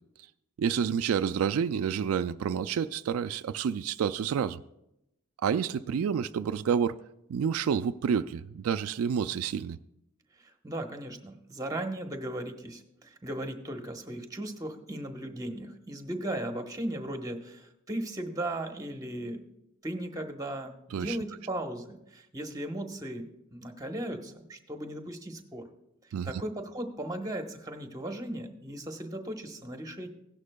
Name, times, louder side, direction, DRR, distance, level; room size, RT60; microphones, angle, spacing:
voice 1, 0.6-4.6 5.4-7.0 7.3-9.8 20.9-21.2 26.1-26.3, right 7 dB, 75° right, 0.3 m, -29 dB
voice 2, 10.4-19.4 19.8-25.7 26.2-30.1, right 1 dB, 15° right, 1.0 m, -37 dB
16.5 x 11.5 x 2.2 m
head